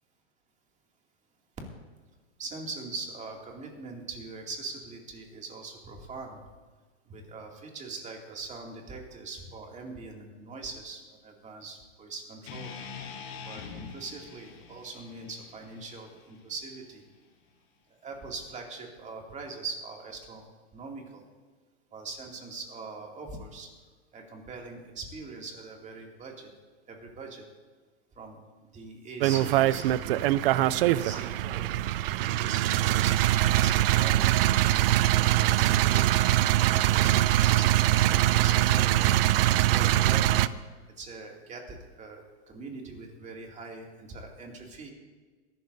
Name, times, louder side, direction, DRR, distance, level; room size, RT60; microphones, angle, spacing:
voice 1, 2.4-6.4 7.1-12.7 13.4-17.0 18.0-20.5 20.7-21.2 21.9-23.7 24.1-26.5 26.9-27.4 28.2-28.4 28.7-31.6 32.4-36.1 36.7-39.0 39.5-40.4 41.0-44.9, right 4 dB, 20° right, 1 dB, 2.4 m, -42 dB
sound 1, 12.5-16.6, left 6 dB, 60° left, 3.2 m, -44 dB
sound 2, 29.2-40.5, right 14 dB, 55° right, 0.5 m, -23 dB
23.0 x 12.0 x 2.7 m, 1.4 s
hypercardioid pair, 125°, 34 cm